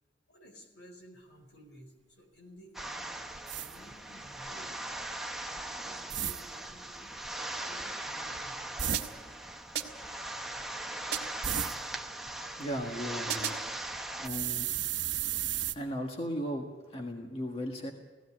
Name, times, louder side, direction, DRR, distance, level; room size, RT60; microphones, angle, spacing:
voice 1, 0.3-3.1 3.5-4.8 5.4-7.2 7.5-9.0 9.6-9.7 11.4-11.6, equal, 75° left, 4 dB, 4.6 m, -55 dB
sound 1, 2.7-14.3, right 1 dB, ahead, 0.9 m, -40 dB
sound 2, 3.5-3.8 6.1-6.4 8.8-9.1 11.4-11.8 14.2-15.7, right 10 dB, 75° right, 1.0 m, -33 dB
sound 3, 8.9-9.4 9.8-10.2 11.1-11.5 13.3-13.8, right 9 dB, 60° right, 1.6 m, -37 dB
voice 2, 12.6-13.5 14.2-14.7 15.7-17.9, equal, 30° left, 1 dB, 1.7 m, -36 dB
17.0 x 15.5 x 9.9 m, 1.2 s
head